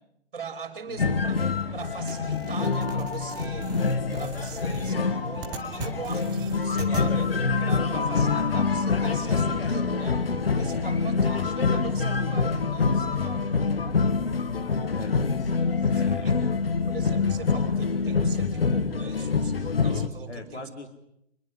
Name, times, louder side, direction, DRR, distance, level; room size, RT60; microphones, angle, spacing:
voice 1, 0.3-1.4 1.7-3.7 4.1-7.3 7.6-10.2 10.6-13.7 15.8-16.3 16.9-20.7, right 5 dB, 45° right, 7 dB, 6.0 m, -40 dB
sound 1, 1.0-20.1, left 4 dB, 55° left, 2.0 m, -26 dB
sound 2, 2.1-7.1, right 6 dB, 10° right, 1.5 m, -40 dB
voice 2, 14.9-16.3 20.3-20.9, left 3 dB, 70° left, 6 dB, 3.6 m, -42 dB
26.0 x 21.5 x 9.8 m, 0.77 s
figure-of-eight pair, 140°, 35 cm